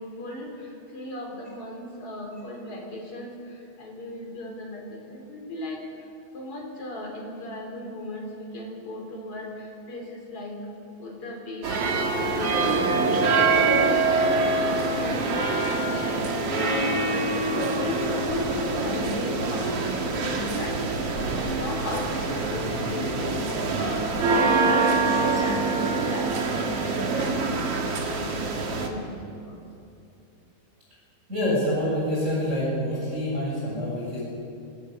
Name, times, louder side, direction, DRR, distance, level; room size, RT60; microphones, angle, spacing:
voice 1, 0.0-3.3 3.8-5.8 6.3-10.6 11.0-16.8 17.3-27.4 28.1-29.6, left 1 dB, 30° left, -1 dB, 4.9 m, -37 dB
sound 1, 11.6-28.9, right 3 dB, 50° right, 1.8 m, -25 dB
voice 2, 31.3-34.2, equal, 15° right, -7 dB, 7.9 m, -26 dB
26.0 x 18.0 x 7.1 m, 2.7 s
omnidirectional pair, 5.3 m